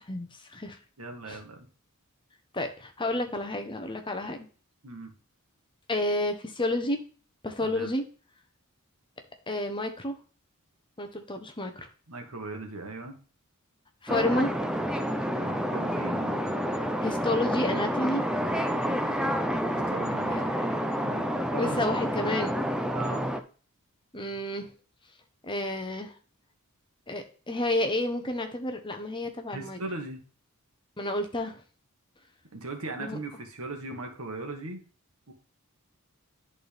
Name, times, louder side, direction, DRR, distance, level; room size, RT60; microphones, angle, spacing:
voice 1, 0.0-0.8 1.3-1.4 2.5-4.5 5.9-7.0 7.4-8.0 9.5-10.2 11.0-11.9 14.0-14.5 17.0-18.2 20.3-20.7 21.6-22.6 24.1-24.7 25.4-26.1 27.1-29.8 31.0-31.6 33.0-33.2, left 1 dB, 20° left, 6 dB, 0.9 m, -30 dB
voice 2, 1.0-1.7 4.8-5.1 7.6-7.9 12.1-13.2 15.4-16.4 19.7-20.4 21.0-21.8 22.9-23.2 29.5-30.2 32.5-34.8 35.3-35.4, right 2 dB, 75° right, 3 dB, 1.7 m, -38 dB
sound 1, 14.1-23.4, equal, 5° right, 0.5 m, -29 dB
10.5 x 4.2 x 3.4 m, 0.38 s
head